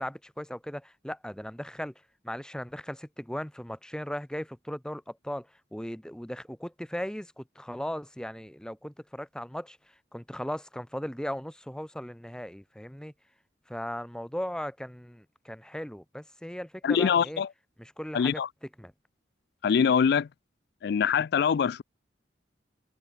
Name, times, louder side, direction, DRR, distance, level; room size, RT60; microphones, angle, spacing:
voice 1, 0.0-1.9 2.2-9.8 10.1-13.1 13.7-17.4 17.8-18.4 18.8-18.9, equal, 5° left, 0.9 m, -37 dB
voice 2, 16.8-17.5 18.1-18.5 19.6-20.3 20.8-21.8, left 7 dB, 60° left, 0.3 m, -24 dB
head